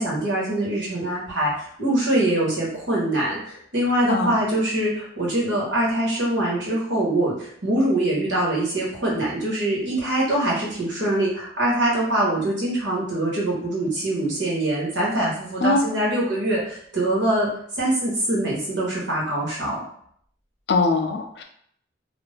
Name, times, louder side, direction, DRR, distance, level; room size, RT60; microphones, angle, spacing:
voice 1, 0.0-17.5 17.8-19.8, right 1 dB, 85° right, -5 dB, 1.3 m, -23 dB
voice 2, 20.7-21.4, left 3 dB, 65° left, 5 dB, 0.4 m, -21 dB
2.5 x 2.4 x 3.4 m, 0.65 s
head